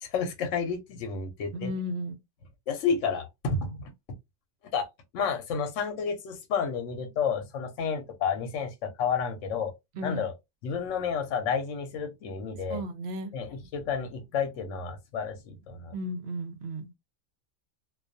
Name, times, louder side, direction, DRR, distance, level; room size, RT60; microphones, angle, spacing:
voice 1, 0.0-1.7 2.7-3.9 4.7-4.9 5.1-9.7 10.0-10.3 10.6-12.8 13.3-15.9, left 6 dB, 80° left, 1.0 m, -31 dB
voice 2, 1.5-2.2 10.0-10.2 12.7-13.3 15.9-16.9, equal, 65° right, 0.8 m, -34 dB
2.3 x 2.2 x 2.5 m
omnidirectional pair, 1.3 m